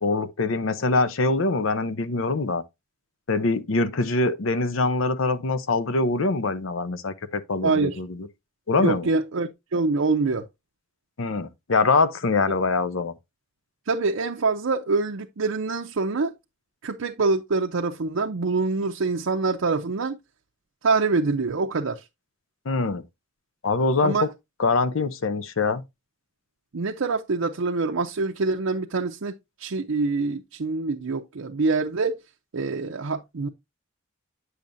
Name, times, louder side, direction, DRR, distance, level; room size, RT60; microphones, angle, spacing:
voice 1, 0.0-2.6 3.3-8.3 8.7-9.1 11.2-13.1 22.7-23.0 23.6-24.3 24.6-25.8, left 3 dB, 75° left, 0.7 m, -24 dB
voice 2, 7.6-8.0 8.8-10.4 13.9-16.3 16.8-20.2 20.8-22.0 24.0-24.3 26.7-29.3 29.6-32.2 32.5-33.5, right 3 dB, 90° right, 0.6 m, -25 dB
8.8 x 6.5 x 2.6 m
head